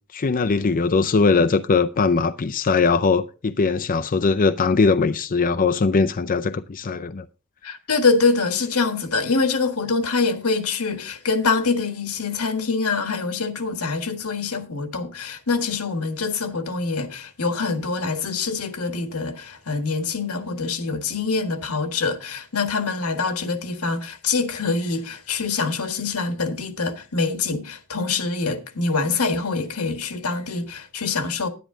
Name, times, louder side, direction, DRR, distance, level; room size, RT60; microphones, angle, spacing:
voice 1, 0.1-7.2, left 4 dB, 40° left, 0.5 m, -20 dB
voice 2, 7.6-31.5, left 4 dB, 85° left, 1.5 m, -25 dB
10.5 x 10.0 x 3.7 m
head